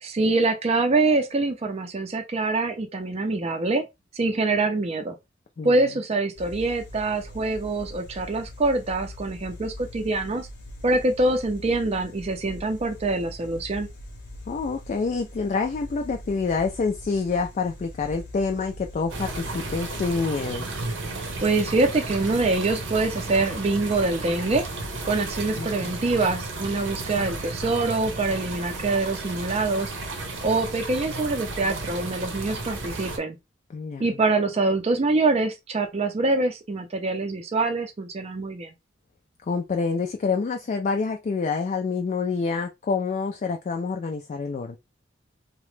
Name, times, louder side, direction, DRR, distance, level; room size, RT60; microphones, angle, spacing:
voice 1, 0.0-3.9 4.1-5.1 5.6-10.5 10.8-13.9 21.4-24.6 25.0-29.9 30.4-33.4 34.0-38.7, right 3 dB, 35° right, 0.4 m, -25 dB
voice 2, 5.6-5.9 14.5-20.7 25.6-25.9 33.7-34.2 39.4-44.8, left 4 dB, 40° left, 0.3 m, -27 dB
sound 1, 6.3-20.2, left 1 dB, 65° left, 0.8 m, -42 dB
sound 2, 19.1-33.2, right 2 dB, 90° right, 0.8 m, -33 dB
2.9 x 2.1 x 3.1 m
head